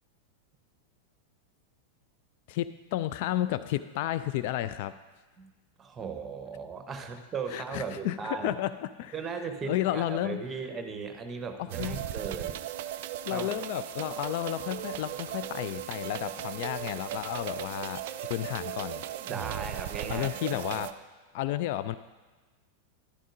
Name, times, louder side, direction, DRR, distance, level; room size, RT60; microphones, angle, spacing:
voice 1, 2.5-4.9 7.5-8.7 9.0-9.1 9.6-10.4 11.6-12.0 13.3-19.0 20.1-20.9 21.3-22.0, left 13 dB, 50° left, 13 dB, 0.3 m, -32 dB
voice 2, 5.8-8.5 9.1-12.6 13.3-13.5 19.3-20.8, right 5 dB, 20° right, 7 dB, 1.0 m, -37 dB
sound 1, 11.7-20.9, right 11 dB, 50° right, 0.4 m, -37 dB
13.0 x 11.5 x 2.6 m, 1.2 s
figure-of-eight pair, 90°, 0 cm